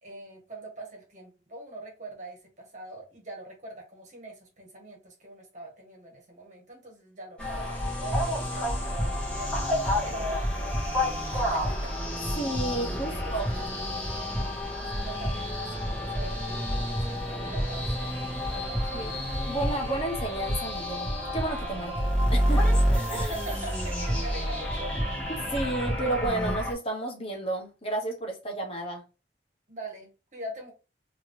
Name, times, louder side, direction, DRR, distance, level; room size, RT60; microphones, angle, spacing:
voice 1, 0.0-9.6 10.0-10.8 11.1-12.3 13.1-13.3 14.8-18.1 18.5-19.2 23.1-24.9 29.7-30.7, right 2 dB, 40° right, 1.6 m, -43 dB
sound 1, 7.4-26.7, equal, 5° left, 1.3 m, -29 dB
voice 2, 12.4-13.5 18.9-19.1 19.5-22.7 23.1-23.3 25.3-29.0, right 2 dB, 30° left, 1.1 m, -32 dB
3.5 x 3.0 x 2.7 m
head